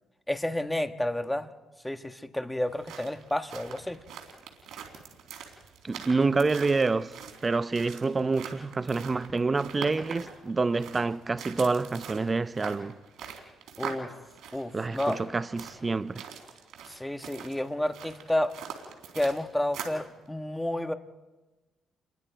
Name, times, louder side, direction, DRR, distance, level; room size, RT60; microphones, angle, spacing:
voice 1, 0.3-1.5 1.8-4.0 13.8-14.1 14.5-15.2 16.9-18.5 19.1-20.9, left 1 dB, 5° left, 1.3 m, -30 dB
sound 1, 2.6-20.1, right 8 dB, 80° right, 3.8 m, -43 dB
voice 2, 5.8-12.9 14.7-16.2, right 3 dB, 25° right, 0.6 m, -27 dB
30.0 x 22.5 x 4.6 m
cardioid pair, 90°, 0 cm